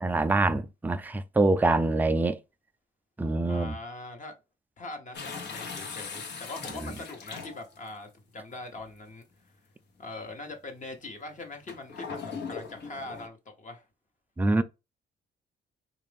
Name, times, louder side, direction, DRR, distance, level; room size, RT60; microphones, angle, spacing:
voice 1, 0.0-2.4 3.2-3.8 14.4-14.6, right 2 dB, 10° right, 0.4 m, -25 dB
voice 2, 3.5-4.3 4.8-9.3 10.0-13.8, left 2 dB, 40° left, 1.1 m, -42 dB
sound 1, 5.1-7.9 8.8-8.9 11.7-13.3, left 5 dB, 60° left, 1.0 m, -39 dB
3.7 x 2.5 x 3.4 m
cardioid pair, 90°, 20 cm